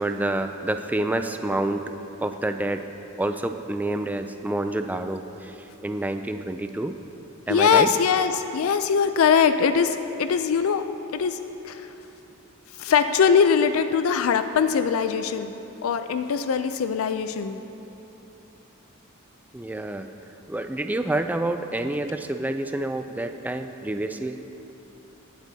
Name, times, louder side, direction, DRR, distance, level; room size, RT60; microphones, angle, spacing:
voice 1, 0.0-1.8 2.2-2.8 3.2-7.0 7.5-7.9 19.5-20.1 20.5-24.4, right 1 dB, 10° right, 7 dB, 0.3 m, -28 dB
voice 2, 7.5-10.8 11.1-11.4 11.6-11.8 12.8-15.5 15.8-17.6, left 6 dB, 80° left, 10 dB, 0.4 m, -21 dB
20.0 x 8.1 x 2.7 m, 3.0 s
head